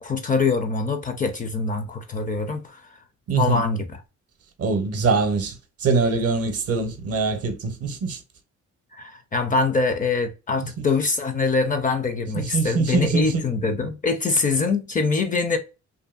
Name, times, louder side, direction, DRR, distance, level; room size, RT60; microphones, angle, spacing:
voice 1, 0.0-2.9 3.4-4.0 8.9-15.6, left 4 dB, 25° left, 0.4 m, -24 dB
voice 2, 3.3-3.6 4.6-8.2 10.8-10.9 12.4-13.3, right 4 dB, 55° right, 0.6 m, -23 dB
2.6 x 2.5 x 2.3 m
cardioid pair, 90°, 30 cm